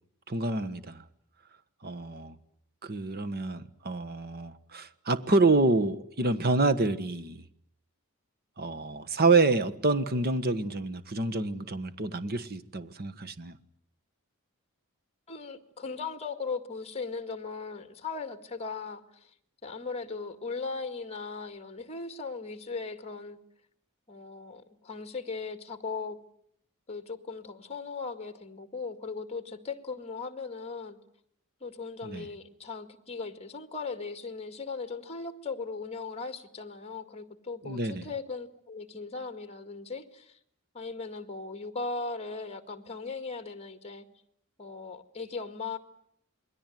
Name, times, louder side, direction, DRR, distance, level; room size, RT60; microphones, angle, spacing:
voice 1, 0.3-1.0 1.8-2.3 2.8-7.4 8.6-13.6 32.0-32.3 37.6-38.1, right 3 dB, 45° right, 1.4 m, -27 dB
voice 2, 15.3-19.3 19.6-23.4 24.1-26.2 26.9-31.0 31.6-40.4 40.7-44.1 44.6-45.8, left 4 dB, 30° left, 2.0 m, -38 dB
28.0 x 21.5 x 9.3 m
head